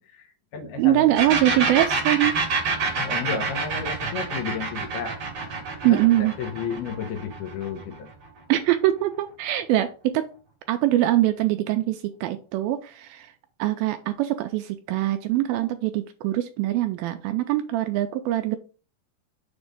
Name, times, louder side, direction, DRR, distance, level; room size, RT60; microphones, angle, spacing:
voice 1, 0.0-1.3 2.9-5.2 5.8-8.1, left 6 dB, 80° left, 4 dB, 3.1 m, -33 dB
voice 2, 0.8-2.4 5.8-6.3 8.5-10.3 10.7-13.3 13.6-18.6, right 14 dB, 80° right, 8 dB, 2.2 m, -23 dB
sound 1, 1.2-8.7, right 4 dB, 40° right, 2.4 m, -27 dB
6.9 x 3.1 x 5.1 m, 0.36 s
omnidirectional pair, 4.5 m